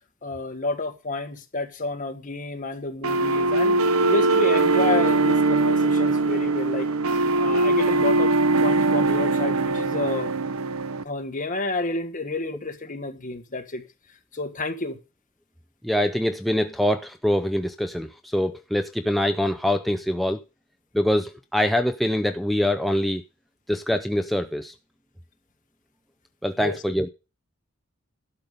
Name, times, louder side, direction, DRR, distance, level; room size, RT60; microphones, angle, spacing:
voice 1, 0.2-3.8 4.1-8.3 8.6-10.3 11.0-13.8 14.3-15.0 26.6-26.9, left 2 dB, 40° left, 1.6 m, -30 dB
sound 1, 3.0-11.0, right 2 dB, 90° right, 0.8 m, -21 dB
voice 2, 15.8-20.4 20.9-23.2 23.7-24.7 26.4-27.1, left 1 dB, ahead, 0.5 m, -24 dB
12.0 x 5.4 x 6.5 m
head